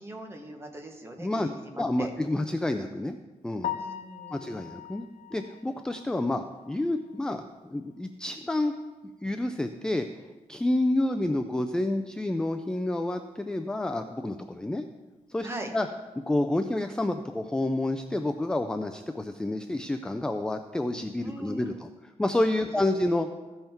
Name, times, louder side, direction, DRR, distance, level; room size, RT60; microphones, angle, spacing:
voice 1, 0.0-2.1 3.7-4.6 15.4-15.7 21.2-21.7 22.6-22.8, right 2 dB, 20° right, 3 dB, 1.1 m, -41 dB
voice 2, 1.8-3.2 3.4-3.8 4.3-8.7 9.2-10.1 10.5-14.8 15.3-15.9 16.3-23.3, left 1 dB, 5° left, 7 dB, 0.3 m, -29 dB
Piano, 3.6-7.6 8.0-8.1 8.6-8.7 9.0-9.1 12.2-12.3 20.8-21.0, left 10 dB, 80° left, 0.5 m, -40 dB
14.5 x 5.6 x 4.4 m, 1.2 s
wide cardioid pair, 170°, 13 cm